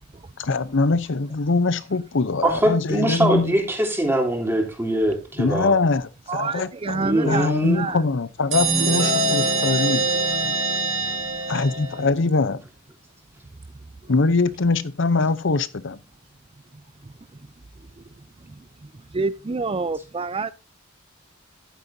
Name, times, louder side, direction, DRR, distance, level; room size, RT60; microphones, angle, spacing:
voice 1, 0.4-3.5 5.4-10.1 10.4-10.5 11.5-12.6 14.1-16.0, left 3 dB, 65° left, 0.7 m, -23 dB
voice 2, 2.4-5.7 7.0-7.8, right 1 dB, 10° right, 3.2 m, -22 dB
voice 3, 6.3-7.5 7.7-8.0 19.1-20.5, right 4 dB, 25° right, 0.5 m, -27 dB
sound 1, 8.5-12.1, right 3 dB, 70° right, 4.3 m, -23 dB
12.0 x 9.4 x 2.7 m
head